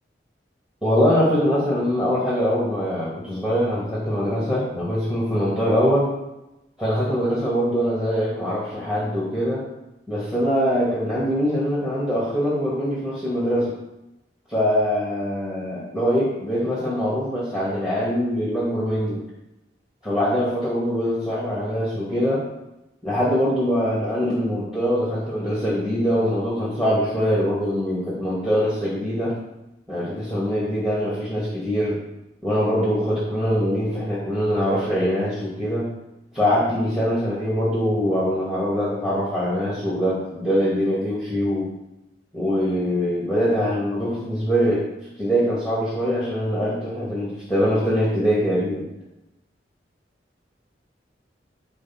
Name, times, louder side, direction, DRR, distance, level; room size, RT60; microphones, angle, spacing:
voice 1, 0.8-6.1 6.8-9.6 10.1-13.7 14.5-19.2 20.0-22.4 23.0-29.3 29.9-32.0 32.4-35.9 36.3-41.7 42.3-44.9 45.2-48.9, equal, ahead, -8 dB, 2.2 m, -23 dB
9.7 x 4.4 x 6.0 m, 0.94 s
head